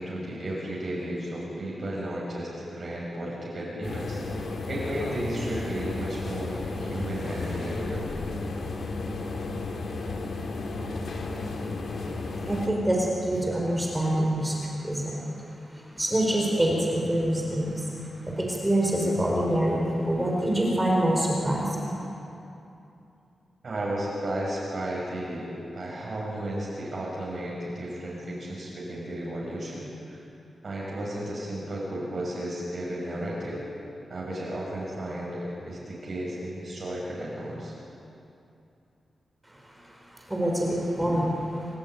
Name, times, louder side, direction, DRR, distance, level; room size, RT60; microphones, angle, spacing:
voice 1, 0.0-4.2 4.7-8.1 23.6-30.2 30.6-33.6 34.1-37.7, right 1 dB, 40° right, -5 dB, 6.4 m, -33 dB
sound 1, 3.8-12.7, left 3 dB, 70° left, 3.4 m, -33 dB
voice 2, 12.1-15.1 16.0-17.9 18.3-21.8 40.3-41.3, right 1 dB, 10° right, -2 dB, 4.8 m, -25 dB
28.5 x 19.0 x 9.4 m, 2.8 s
wide cardioid pair, 155°, 0 cm